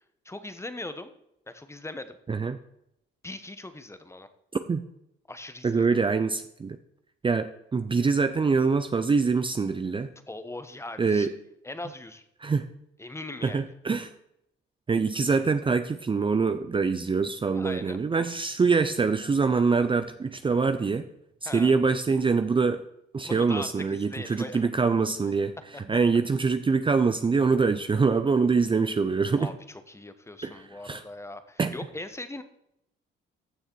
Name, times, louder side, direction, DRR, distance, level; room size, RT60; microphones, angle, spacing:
voice 1, 0.2-1.1 1.5-2.2 3.2-4.3 5.3-5.9 10.3-11.3 11.6-12.2 13.0-13.7 17.5-18.0 21.4-21.7 23.3-24.7 29.4-32.4, left 2 dB, 15° left, 11 dB, 1.1 m, -40 dB
voice 2, 2.3-2.6 4.7-4.8 5.6-6.8 7.2-10.1 11.0-11.3 12.4-12.7 13.4-14.1 14.9-21.0 21.4-22.8 23.1-25.6 25.9-29.5 30.4-31.0 31.6-31.7, right 4 dB, 25° right, 10 dB, 0.6 m, -24 dB
14.0 x 6.5 x 4.6 m, 0.80 s
cardioid pair, 90°, 20 cm